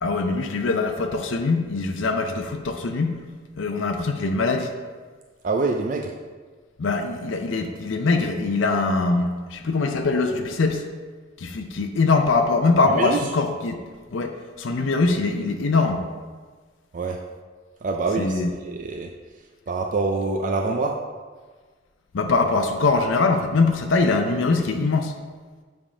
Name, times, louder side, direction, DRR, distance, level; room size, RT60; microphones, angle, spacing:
voice 1, 0.0-3.2 3.5-4.7 6.8-10.8 11.4-13.8 14.1-16.0 18.2-18.5 22.1-25.1, left 3 dB, 75° left, 5 dB, 0.5 m, -22 dB
voice 2, 5.4-6.1 12.9-13.2 16.9-17.2 17.8-19.1 19.7-21.0, right 3 dB, 40° right, 2 dB, 0.4 m, -25 dB
7.4 x 3.6 x 4.9 m, 1.5 s
head